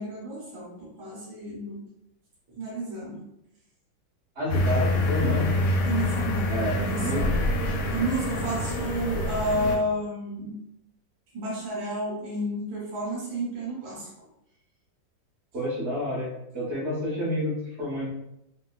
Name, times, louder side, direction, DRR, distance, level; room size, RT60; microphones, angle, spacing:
voice 1, 0.0-1.9 2.5-3.3 5.9-7.3 7.9-10.6 11.3-14.1, right 1 dB, 80° right, -4 dB, 1.8 m, -31 dB
voice 2, 4.3-5.5 6.5-7.3 15.5-18.0, left 1 dB, 40° right, -6 dB, 1.5 m, -29 dB
sound 1, 4.5-9.8, left 1 dB, 70° left, 1.1 m, -26 dB
3.5 x 2.7 x 2.3 m, 0.81 s
omnidirectional pair, 2.1 m